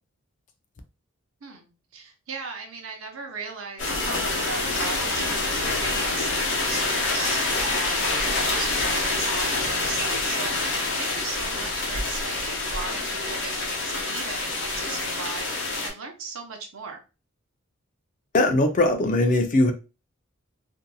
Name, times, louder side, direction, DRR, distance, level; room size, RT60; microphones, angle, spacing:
voice 1, 1.4-17.0, right 4 dB, 75° right, 0.7 m, -38 dB
sound 1, 3.8-15.9, left 2 dB, 60° left, 0.8 m, -26 dB
voice 2, 18.3-19.7, left 2 dB, 40° left, 0.4 m, -20 dB
2.7 x 2.6 x 2.2 m
head